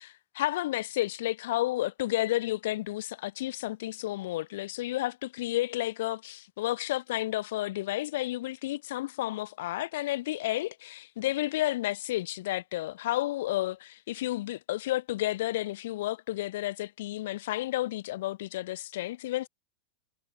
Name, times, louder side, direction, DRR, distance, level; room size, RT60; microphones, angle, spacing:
voice 1, 0.0-19.5, left 15 dB, 65° left, 1.9 m, -31 dB
hypercardioid pair, 95°, 0 cm